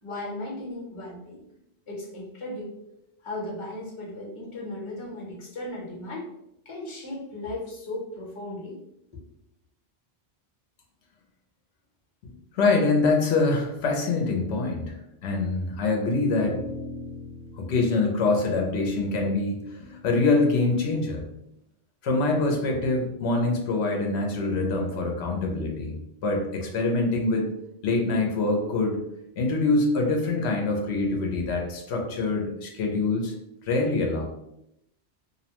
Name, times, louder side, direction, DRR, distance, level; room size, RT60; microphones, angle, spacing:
voice 1, 0.0-1.4 1.9-2.7 3.2-6.3 6.6-8.8 9.1-9.2, left 1 dB, 30° left, -2 dB, 0.7 m, -36 dB
voice 2, 12.2-15.0 15.2-16.6 17.6-21.3 22.0-26.0 26.2-27.5 27.8-29.0 29.4-33.3 33.7-34.2, left 3 dB, 85° left, 1 dB, 0.9 m, -25 dB
sound 1, 16.4-20.9, left 1 dB, 75° right, 0.9 m, -41 dB
2.7 x 2.0 x 2.8 m, 0.83 s
omnidirectional pair, 1.1 m